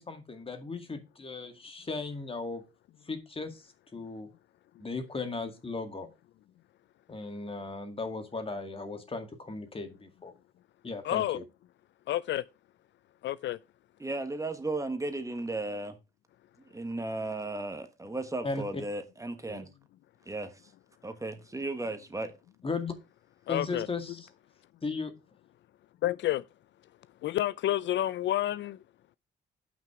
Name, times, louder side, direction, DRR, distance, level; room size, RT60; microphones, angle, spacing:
voice 1, 0.0-2.6 3.1-3.6 3.9-4.3 4.8-6.1 7.1-10.3 10.8-11.4 18.4-18.8 19.5-19.6 22.6-22.9 23.5-24.2 24.8-25.1, left 3 dB, 30° left, 2.0 m, -36 dB
voice 2, 11.0-11.4 12.1-12.4 13.2-13.6 23.5-23.9 26.0-26.5 27.2-28.8, left 13 dB, 65° left, 0.4 m, -29 dB
voice 3, 14.0-16.0 16.6-19.7 20.3-20.5 21.0-22.3, right 2 dB, 15° right, 1.4 m, -35 dB
7.4 x 6.1 x 4.7 m
cardioid pair, 90°, 20 cm